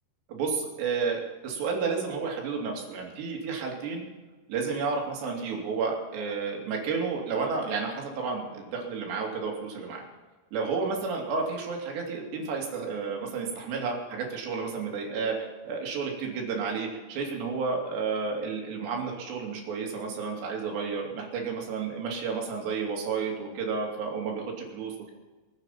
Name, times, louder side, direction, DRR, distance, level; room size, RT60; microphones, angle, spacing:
voice 1, 0.3-4.0 4.5-10.0 10.5-25.1, right 5 dB, 70° right, 0 dB, 4.8 m, -31 dB
23.0 x 8.9 x 5.8 m, 1.3 s
omnidirectional pair, 5.2 m